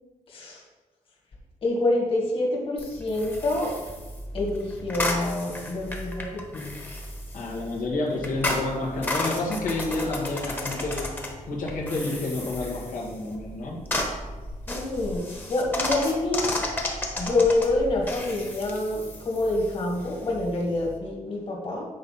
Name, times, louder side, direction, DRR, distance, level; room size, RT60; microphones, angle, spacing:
voice 1, 0.3-0.6 1.6-3.7 4.3-6.7 14.7-16.5 17.2-21.9, left 2 dB, 40° left, -3 dB, 1.8 m, -27 dB
sound 1, 2.8-21.0, left 1 dB, 15° left, 1.0 m, -33 dB
voice 2, 7.3-11.1 11.5-13.8, left 2 dB, 90° left, -3 dB, 1.8 m, -29 dB
8.7 x 4.1 x 5.7 m, 1.2 s
wide cardioid pair, 165°, 14 cm